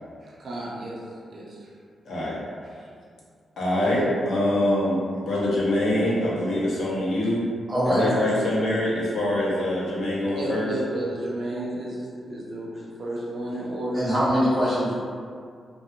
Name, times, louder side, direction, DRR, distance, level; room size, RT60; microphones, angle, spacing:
voice 1, 0.2-1.0 1.3-1.7 10.4-14.1, right 1 dB, 50° right, -4 dB, 0.4 m, -32 dB
voice 2, 2.1-2.4 3.6-7.5 7.9-10.7, left 1 dB, 65° left, -7 dB, 0.6 m, -24 dB
voice 3, 7.7-8.0 13.9-14.9, equal, 10° right, -9 dB, 0.7 m, -22 dB
2.2 x 2.2 x 2.7 m, 2.2 s
wide cardioid pair, 160°, 0 cm